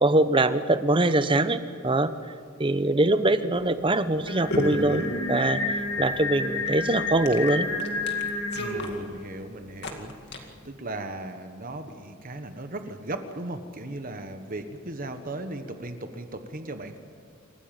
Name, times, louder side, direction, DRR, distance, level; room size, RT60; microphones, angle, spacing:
voice 1, 0.0-2.1 2.6-5.6 6.0-7.7, right 2 dB, 25° right, 11 dB, 0.9 m, -23 dB
sound 1, 3.5-10.7, left 1 dB, 55° left, 2.3 m, -36 dB
Singing, 4.3-9.0, left 3 dB, 90° left, 6.5 m, -30 dB
voice 2, 8.5-17.0, right 2 dB, 40° right, 7 dB, 1.3 m, -37 dB
28.0 x 15.0 x 9.0 m, 2.3 s
head